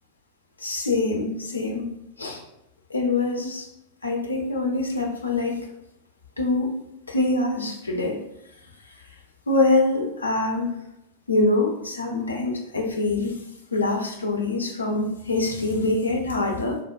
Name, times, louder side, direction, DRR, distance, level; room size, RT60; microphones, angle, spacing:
voice 1, 0.6-1.9 2.2-2.4 2.9-3.7 4.0-5.7 6.4-8.2 9.5-10.8 11.3-13.3 13.7-16.8, left 2 dB, 80° left, 2 dB, 0.5 m, -24 dB
4.5 x 2.1 x 2.2 m, 0.84 s
figure-of-eight pair, 90°, 0 cm